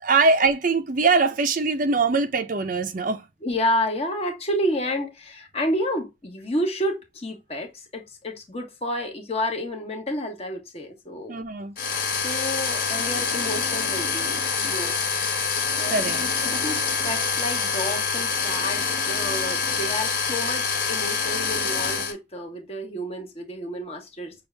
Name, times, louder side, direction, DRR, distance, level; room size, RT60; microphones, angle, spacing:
voice 1, 0.0-3.3 11.3-11.7 15.9-16.7, right 4 dB, 45° right, 0.5 m, -22 dB
voice 2, 3.4-11.4 12.1-15.0 15.8-24.3, equal, 35° left, 1.2 m, -30 dB
sound 1, 11.8-22.1, left 5 dB, 50° left, 1.6 m, -26 dB
6.2 x 2.4 x 3.2 m
head